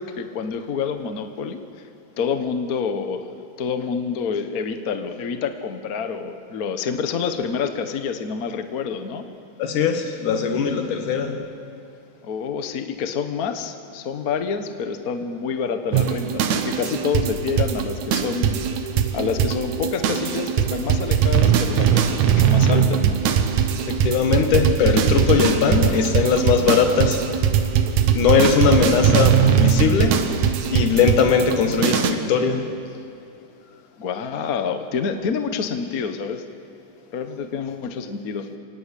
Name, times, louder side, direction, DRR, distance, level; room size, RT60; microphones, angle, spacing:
voice 1, 0.0-1.6 2.2-3.3 3.6-9.3 12.2-18.6 19.1-23.2 28.6-29.2 34.0-36.4 37.1-38.5, left 6 dB, 55° left, 8 dB, 1.0 m, -27 dB
voice 2, 9.6-11.4 23.8-27.4 28.1-30.3 30.7-32.7, left 6 dB, 80° left, 6 dB, 3.2 m, -20 dB
sound 1, 15.9-32.1, right 8 dB, 70° right, 2.4 m, -20 dB
27.5 x 18.5 x 8.4 m, 2.6 s
omnidirectional pair, 3.5 m